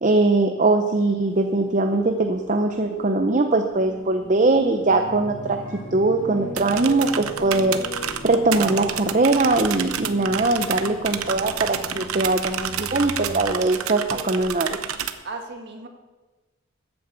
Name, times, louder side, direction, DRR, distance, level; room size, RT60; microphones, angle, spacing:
voice 1, 0.0-14.9, right 2 dB, 35° right, 6 dB, 0.6 m, -21 dB
Bird, 1.3-13.4, left 2 dB, 10° left, 4.3 m, -43 dB
sound 1, 3.7-13.6, left 1 dB, 35° left, 4.7 m, -38 dB
sound 2, 6.6-15.1, right 9 dB, 90° right, 0.8 m, -30 dB
voice 2, 14.1-14.5 15.2-15.9, right 3 dB, 50° right, 4 dB, 1.7 m, -36 dB
14.0 x 8.8 x 6.9 m, 1.3 s
head